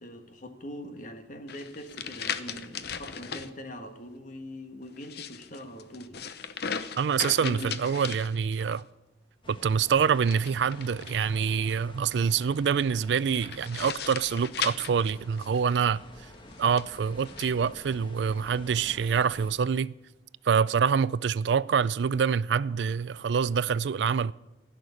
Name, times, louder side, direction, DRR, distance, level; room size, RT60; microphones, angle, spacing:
voice 1, 0.0-6.2 7.4-7.7, left 1 dB, 50° left, 1.6 m, -42 dB
sound 1, 1.5-3.5 4.9-8.8 10.2-11.5 13.3-15.8 16.5-17.5, left 7 dB, 65° left, 0.8 m, -37 dB
voice 2, 7.0-8.8 9.5-16.0 16.6-19.9 20.5-24.3, right 6 dB, 75° right, 0.4 m, -26 dB
sound 2, 9.4-19.5, left 1 dB, 30° left, 1.6 m, -49 dB
15.5 x 6.6 x 9.8 m
head